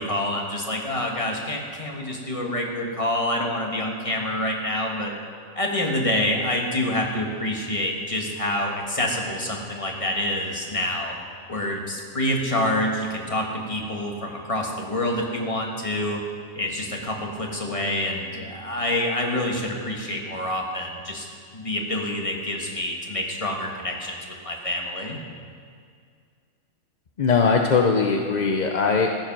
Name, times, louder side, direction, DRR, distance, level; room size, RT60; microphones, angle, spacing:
voice 1, 0.0-5.1 5.5-11.1 11.5-16.2 16.5-21.3 21.5-24.2 24.4-25.2, left 1 dB, 25° left, 0 dB, 1.5 m, -27 dB
voice 2, 27.2-29.1, left 5 dB, 45° left, 3 dB, 0.6 m, -20 dB
15.0 x 7.6 x 5.9 m, 2.2 s
omnidirectional pair, 1.4 m